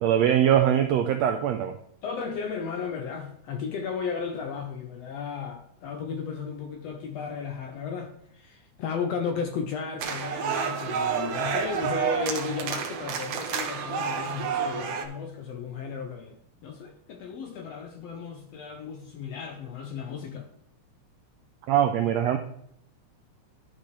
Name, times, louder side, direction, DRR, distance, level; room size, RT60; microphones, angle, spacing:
voice 1, 0.0-1.8 21.7-22.4, right 10 dB, 85° right, 1.5 m, -22 dB
voice 2, 2.0-20.5, left 5 dB, 70° left, 1.6 m, -34 dB
sound 1, 10.0-15.0, right 7 dB, 65° right, 1.6 m, -29 dB
12.0 x 5.9 x 3.2 m
omnidirectional pair, 3.7 m